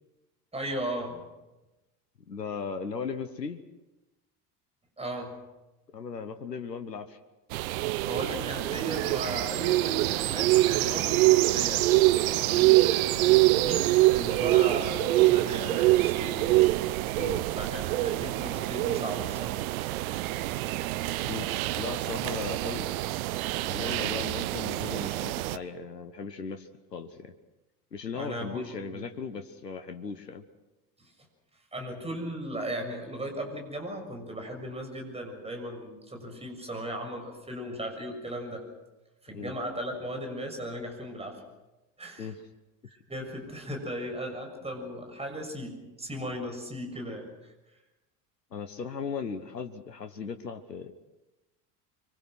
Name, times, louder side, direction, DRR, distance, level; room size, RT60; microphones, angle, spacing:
voice 1, 0.5-1.2 5.0-5.4 8.0-11.9 12.5-16.5 17.6-19.6 28.2-28.6 28.9-29.1 31.0-31.1 31.7-38.7 39.2-41.4 42.0-42.3 42.9-47.5, equal, 10° right, 3 dB, 6.9 m, -37 dB
voice 2, 2.3-3.6 5.9-7.2 12.4-12.6 17.2-17.4 21.3-21.5 21.8-22.9 23.6-27.3 27.9-30.4 39.3-39.5 42.2-42.4 48.5-50.9, left 5 dB, 85° left, 9 dB, 1.2 m, -37 dB
sound 1, 7.5-25.6, right 18 dB, 60° right, 0.9 m, -25 dB
25.5 x 24.0 x 6.3 m, 1.0 s
figure-of-eight pair, 65°, 48 cm